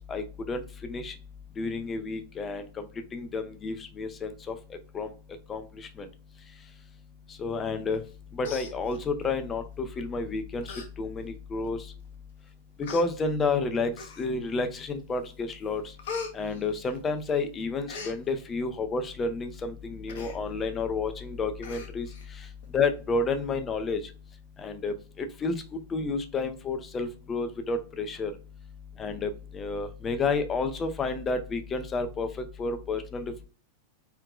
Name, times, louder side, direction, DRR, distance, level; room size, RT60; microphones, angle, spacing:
voice 1, 0.1-1.1 1.6-2.9 3.1-4.6 4.9-5.1 5.5-6.1 7.4-8.0 8.3-10.6 11.0-11.8 12.8-15.8 16.3-22.1 22.7-24.0 24.6-25.6 25.9-28.3 29.0-33.5, left 3 dB, 20° left, 8 dB, 0.8 m, -30 dB
Human voice, 8.0-8.1 8.4-9.3 10.1-10.2 10.6-10.9 11.3-11.4 12.1-12.2 12.8-13.1 13.9-14.5 15.0-15.3 15.6-17.3 17.6-18.2 20.1-20.4 20.8-20.9 21.1-21.2 21.6-22.3 22.6-22.7, left 4 dB, 55° left, 0.9 m, -40 dB
4.7 x 3.4 x 2.3 m, 0.35 s
figure-of-eight pair, 90°, 0 cm